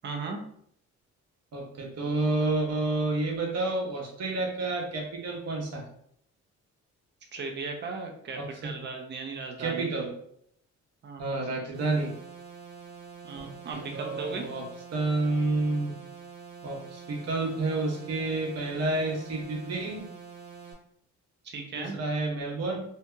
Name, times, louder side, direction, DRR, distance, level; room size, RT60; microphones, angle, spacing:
voice 1, 0.0-0.4 7.3-9.9 11.0-11.4 13.2-14.5 21.4-22.0, right 4 dB, 35° right, 2 dB, 0.6 m, -37 dB
voice 2, 1.5-5.8 8.4-8.7 9.6-10.1 11.2-12.1 13.4-14.6 14.9-16.0 16.6-20.1 21.7-22.8, right 2 dB, 55° right, 0 dB, 0.9 m, -30 dB
sound 1, 11.7-20.7, right 6 dB, 90° right, 0.9 m, -46 dB
2.7 x 2.7 x 2.2 m, 0.68 s
cardioid pair, 90°, 30 cm